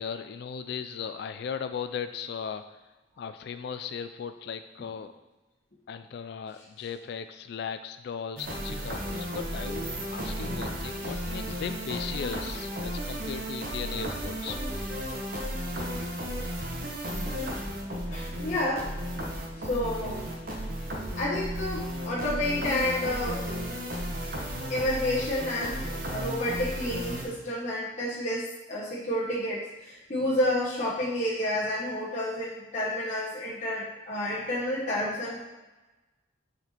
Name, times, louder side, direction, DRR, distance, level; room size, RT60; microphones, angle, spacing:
voice 1, 0.0-2.8 3.2-5.1 5.9-15.0, left 7 dB, 55° left, 10 dB, 0.3 m, -37 dB
sound 1, 8.4-27.3, equal, 50° right, 1.1 m, -34 dB
voice 2, 18.1-18.9 19.5-20.2 21.2-23.5 24.7-35.4, left 1 dB, 40° left, -7 dB, 1.0 m, -30 dB
6.6 x 4.4 x 4.3 m, 1.1 s
head